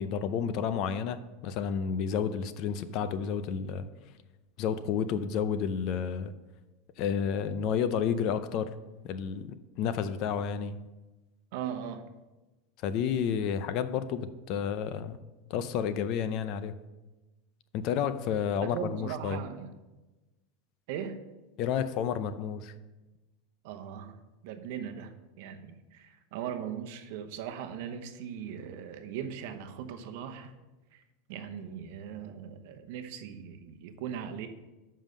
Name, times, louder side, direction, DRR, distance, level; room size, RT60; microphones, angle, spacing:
voice 1, 0.0-3.8 4.6-6.3 7.0-8.7 9.0-10.8 12.8-15.2 15.5-16.7 17.7-19.4 21.6-22.7, left 7 dB, 45° left, 12 dB, 0.5 m, -31 dB
voice 2, 11.5-12.1 18.6-19.7 20.9-21.2 23.6-30.5 30.9-31.0 31.3-34.5, right 8 dB, 60° right, 7 dB, 0.9 m, -39 dB
7.1 x 5.5 x 6.5 m, 1.1 s
supercardioid pair, 155°, 0 cm